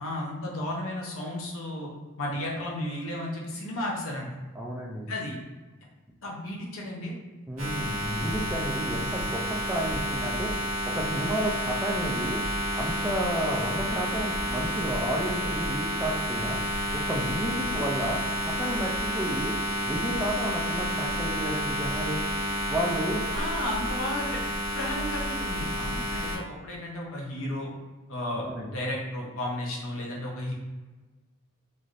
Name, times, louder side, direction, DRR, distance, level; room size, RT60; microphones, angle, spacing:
voice 1, 0.0-1.9 2.2-4.3 5.1-5.4 6.2-7.1 23.3-27.7 28.1-30.5, left 1 dB, 65° left, -2 dB, 0.7 m, -33 dB
voice 2, 4.6-5.1 7.5-10.5 10.9-12.4 12.8-16.6 16.9-19.6 19.8-22.2 22.7-23.3 28.4-28.8, right 1 dB, 10° right, -2 dB, 0.3 m, -31 dB
sound 1, 7.6-26.4, equal, 85° right, 1.0 m, -30 dB
3.1 x 2.6 x 2.4 m, 1.3 s
head